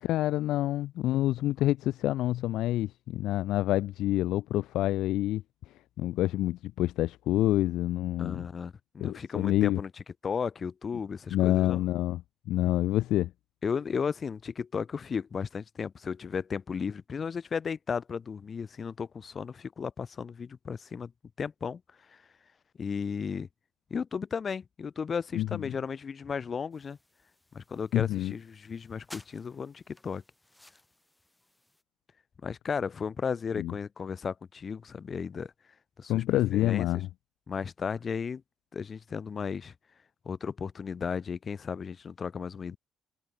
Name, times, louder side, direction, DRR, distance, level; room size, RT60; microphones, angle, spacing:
voice 1, 0.1-5.4 6.0-8.5 9.0-9.8 11.3-12.2 12.5-13.3 25.4-25.6 27.9-28.3 33.6-33.7 36.1-37.1, left 15 dB, 85° left, 0.3 m, -27 dB
voice 2, 8.2-9.9 10.2-11.8 13.6-21.1 21.4-21.8 22.1-22.2 22.8-23.5 23.9-27.0 27.5-30.2 32.4-35.5 36.0-36.2 36.5-36.9 37.5-38.4 38.7-39.7 40.2-42.8, left 6 dB, 45° left, 1.0 m, -34 dB
sound 1, 26.7-31.8, left 1 dB, 10° left, 2.7 m, -56 dB
cardioid pair, 90°, 0 cm